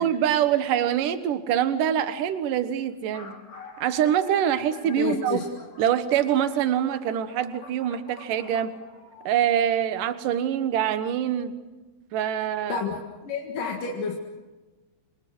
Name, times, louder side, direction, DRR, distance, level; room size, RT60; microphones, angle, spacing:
voice 1, 0.0-3.4 3.8-5.4 5.8-8.8 9.2-11.5 12.1-12.8, right 10 dB, 65° right, 11 dB, 2.5 m, -24 dB
sound 1, 1.3-1.4 2.2-2.3 2.5-2.6 2.9-9.3, left 4 dB, 75° left, 6.9 m, -47 dB
voice 2, 5.0-5.5 12.7-14.2, left 6 dB, 55° left, 0 dB, 3.3 m, -30 dB
30.0 x 25.5 x 6.3 m, 1.2 s
omnidirectional pair, 4.9 m